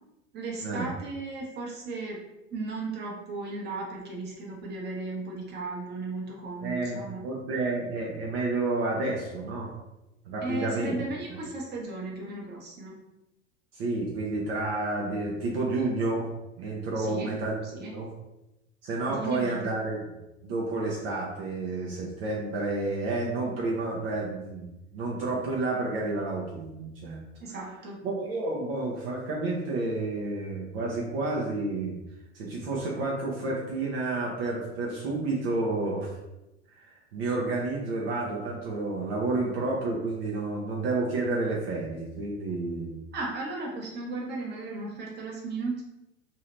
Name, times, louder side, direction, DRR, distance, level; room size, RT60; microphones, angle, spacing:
voice 1, 0.3-2.2 2.5-7.2 10.4-13.0 17.0-17.3 17.6-17.9 19.1-19.8 27.4-28.0 43.1-45.8, right 3 dB, 30° right, -2 dB, 1.0 m, -35 dB
voice 2, 6.6-9.7 10.3-11.0 13.7-16.3 16.6-17.6 17.9-18.1 18.8-20.0 20.4-27.2 28.0-32.0 32.3-36.1 36.7-43.0, right 2 dB, 55° right, -3 dB, 0.8 m, -30 dB
2.8 x 2.8 x 3.2 m, 0.96 s
figure-of-eight pair, 80°, 36 cm